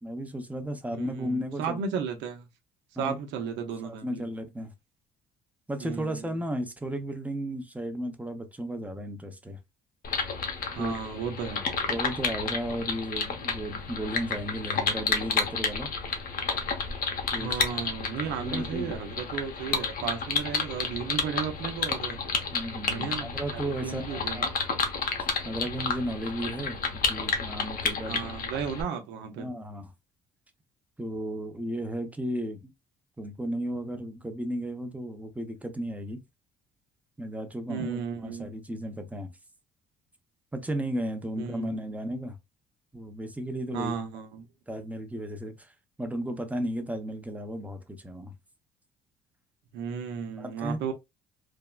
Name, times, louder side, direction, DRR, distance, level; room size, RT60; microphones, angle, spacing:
voice 1, 0.0-1.8 3.0-3.2 3.8-4.7 5.7-9.6 10.8-11.1 11.9-15.9 17.3-17.6 18.4-19.0 22.5-24.5 25.4-28.3 29.4-29.9 31.0-32.7 33.2-36.2 37.2-39.3 40.5-42.4 42.9-44.0 44.7-45.7 46.0-48.3 50.4-50.9, equal, 10° right, 0.6 m, -34 dB
voice 2, 1.0-2.5 3.0-4.2 5.8-6.3 10.7-11.6 17.3-22.2 22.9-24.5 28.1-29.5 37.7-38.5 41.4-41.8 43.7-44.5 49.7-50.9, right 7 dB, 80° right, 0.7 m, -34 dB
sound 1, 10.0-28.8, left 5 dB, 50° left, 0.7 m, -31 dB
3.4 x 2.0 x 2.2 m
supercardioid pair, 85°, 18 cm